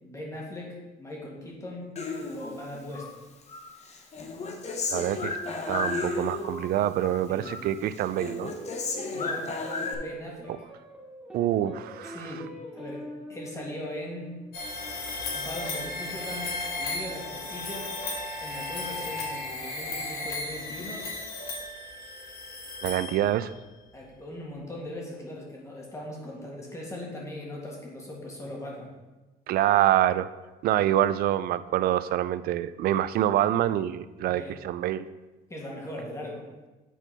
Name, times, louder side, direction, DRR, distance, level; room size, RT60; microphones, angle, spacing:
voice 1, 0.0-1.8 2.3-3.1 7.3-7.5 9.1-9.5 9.9-10.5 12.0-12.5 12.7-13.0 13.3-14.3 15.3-16.5 16.8-17.9 18.4-21.0 23.9-28.9 34.3-34.5 35.5-36.5, left 1 dB, 15° left, -2 dB, 2.0 m, -39 dB
Human voice, 2.0-3.1 3.5-6.7 7.0-7.7 8.0-9.9, left 3 dB, 40° left, 1.0 m, -33 dB
voice 2, 4.9-5.4 5.7-8.5 11.3-12.3 22.8-23.5 29.5-30.3 30.6-35.1, right 12 dB, 65° right, 15 dB, 0.4 m, -26 dB
sound 1, 8.4-17.0, equal, 5° right, 1.7 m, -45 dB
sound 2, 14.5-23.6, left 2 dB, 65° left, 1.9 m, -35 dB
9.1 x 4.4 x 4.1 m, 1.2 s
cardioid pair, 110°, 17 cm